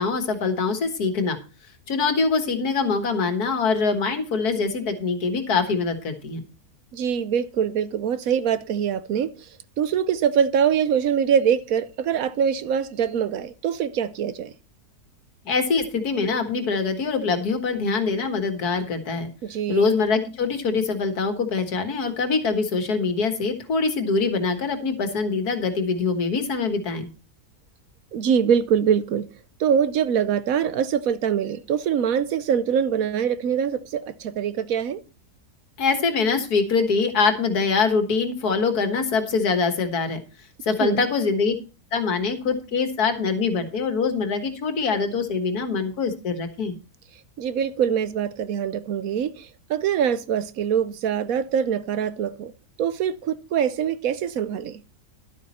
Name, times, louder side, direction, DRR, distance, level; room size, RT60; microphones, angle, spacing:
voice 1, 0.0-1.4 1.9-6.4 15.5-19.3 19.7-27.1 35.8-40.2 40.6-41.5 41.9-46.8, left 4 dB, 80° left, 2.0 m, -24 dB
voice 2, 6.9-9.5 9.8-14.5 19.4-19.8 28.1-29.2 29.6-35.0 40.8-41.1 47.4-52.5 52.8-54.8, right 8 dB, 70° right, 1.1 m, -23 dB
12.0 x 8.5 x 4.2 m
omnidirectional pair, 1.6 m